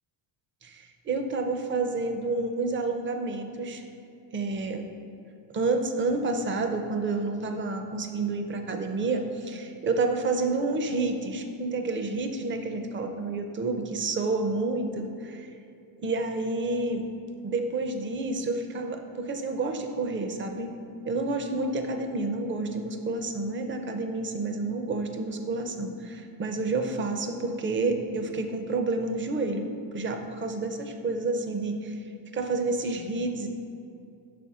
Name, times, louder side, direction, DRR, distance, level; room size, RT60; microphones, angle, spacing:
voice 1, 0.6-3.8 4.3-4.8 5.5-15.5 16.0-17.1 17.4-20.7 21.0-29.6 29.9-32.0 32.3-33.5, right 3 dB, 25° right, 6 dB, 0.4 m, -29 dB
5.7 x 4.3 x 4.7 m, 2.6 s
cardioid pair, 120°, 47 cm